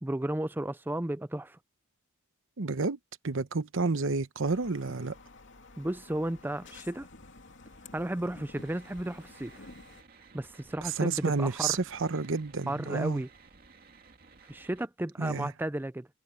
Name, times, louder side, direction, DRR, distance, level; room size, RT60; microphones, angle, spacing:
voice 1, 0.0-1.6 5.8-7.1 7.9-9.7 10.3-11.8 12.7-13.3 14.5-16.1, right 1 dB, 10° right, 0.5 m, -33 dB
voice 2, 2.6-3.0 3.2-5.2 10.8-13.2 15.2-15.5, right 4 dB, 65° right, 0.9 m, -30 dB
sound 1, 4.4-10.0, left 3 dB, 60° left, 2.9 m, -52 dB
sound 2, 8.5-14.9, right 4 dB, 45° right, 2.5 m, -56 dB
head